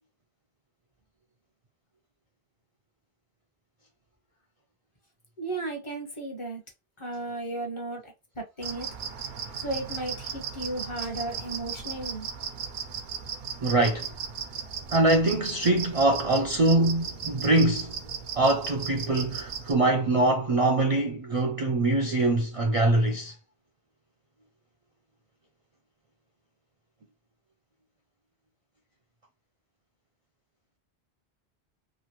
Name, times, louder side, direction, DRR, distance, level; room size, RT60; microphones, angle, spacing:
voice 1, 5.4-6.6 7.0-8.1 8.6-8.9 9.6-12.3, right 2 dB, 30° left, 0.8 m, -34 dB
sound 1, 8.6-19.7, right 7 dB, 70° right, 0.8 m, -36 dB
voice 2, 13.6-14.1 14.9-18.0 18.4-23.3, right 2 dB, 45° right, 0.4 m, -23 dB
3.1 x 2.4 x 2.9 m
omnidirectional pair, 1.1 m